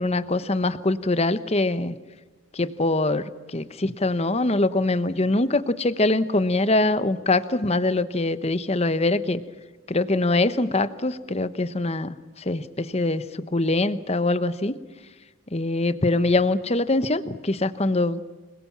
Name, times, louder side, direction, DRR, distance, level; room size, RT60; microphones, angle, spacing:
voice 1, 0.0-2.0 2.5-9.4 9.9-14.7 15.5-18.2, left 2 dB, 30° left, 13 dB, 0.9 m, -23 dB
27.0 x 21.0 x 7.3 m, 1.3 s
head